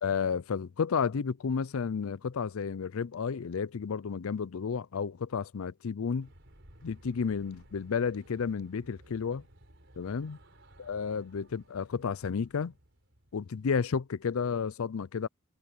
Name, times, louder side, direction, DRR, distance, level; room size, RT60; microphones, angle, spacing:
voice 1, 0.0-6.3 6.8-9.4 10.0-10.4 10.8-12.7 13.3-15.3, left 6 dB, 80° left, 0.5 m, -32 dB
sound 1, 6.2-13.8, right 1 dB, 60° right, 5.0 m, -58 dB
head